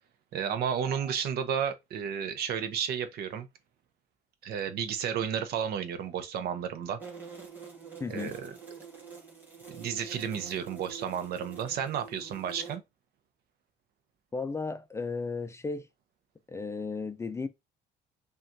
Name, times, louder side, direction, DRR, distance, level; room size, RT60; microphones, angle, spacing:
voice 1, 0.3-3.5 4.4-7.0 8.1-8.5 9.7-12.8, right 8 dB, 70° right, 0.7 m, -32 dB
sound 1, 7.0-12.7, right 6 dB, 10° right, 1.5 m, -46 dB
voice 2, 8.0-8.4 14.3-15.9 16.5-17.5, left 4 dB, 15° left, 0.4 m, -34 dB
5.4 x 2.4 x 2.6 m
cardioid pair, 110°, 17 cm